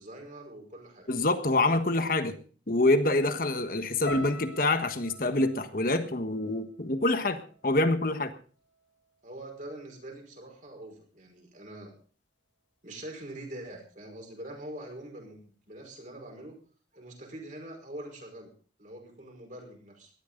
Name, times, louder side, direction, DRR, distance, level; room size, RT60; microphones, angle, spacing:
voice 1, 0.0-1.1 9.2-11.9 12.8-16.6 16.9-18.5 18.8-20.1, right 1 dB, 45° right, 2 dB, 5.2 m, -44 dB
voice 2, 1.1-2.4 2.7-8.3, left 2 dB, 50° left, 9 dB, 1.4 m, -26 dB
sound 1, 4.1-8.3 8.5-9.3 9.9-10.1, left 1 dB, 85° left, 2.6 m, -45 dB
18.0 x 13.0 x 3.9 m, 0.41 s
head